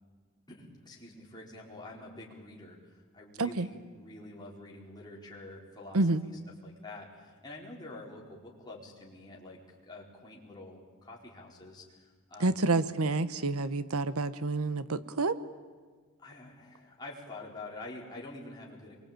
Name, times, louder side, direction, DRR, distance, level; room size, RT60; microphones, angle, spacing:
voice 1, 0.5-12.7 16.2-19.0, left 2 dB, 20° left, -3 dB, 4.7 m, -47 dB
voice 2, 12.4-15.4, right 3 dB, 80° right, 14 dB, 1.0 m, -28 dB
26.0 x 23.5 x 9.0 m, 1.6 s
head